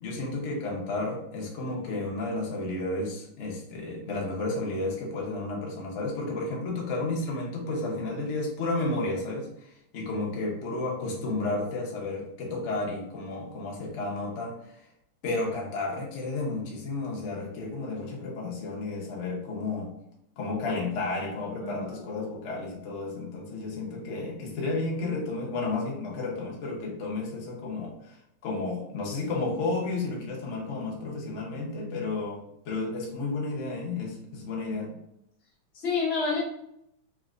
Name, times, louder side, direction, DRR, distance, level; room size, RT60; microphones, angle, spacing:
voice 1, 0.0-14.9 15.2-19.9 20.4-28.2 28.4-35.0, left 2 dB, 70° left, -2 dB, 0.6 m, -32 dB
voice 2, 21.6-22.0 35.7-36.4, left 4 dB, 35° left, -6 dB, 1.1 m, -28 dB
3.4 x 2.9 x 2.3 m, 0.77 s
omnidirectional pair, 2.4 m